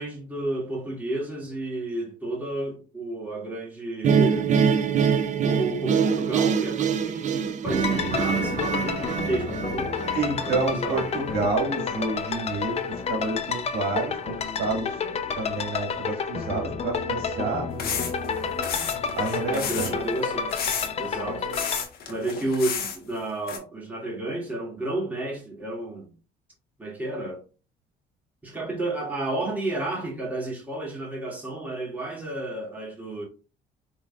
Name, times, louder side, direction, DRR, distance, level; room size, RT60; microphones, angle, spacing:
voice 1, 0.0-4.5 5.4-10.0 10.4-11.0 19.5-20.5 21.0-21.5 22.1-26.1 26.8-27.4 28.4-33.2, right 2 dB, 10° right, 2.2 m, -31 dB
sound 1, 4.0-11.1, right 6 dB, 45° right, 0.5 m, -24 dB
sound 2, 7.6-21.8, left 6 dB, 40° left, 0.6 m, -30 dB
voice 2, 10.1-14.9 15.4-17.7 19.2-19.9, right 3 dB, 70° right, 1.9 m, -29 dB
sound 3, 17.8-18.3 18.6-19.9 20.5-21.1 21.5-23.0 23.5-23.6, left 7 dB, 65° left, 1.3 m, -31 dB
4.7 x 3.7 x 2.4 m
cardioid pair, 110°, 17 cm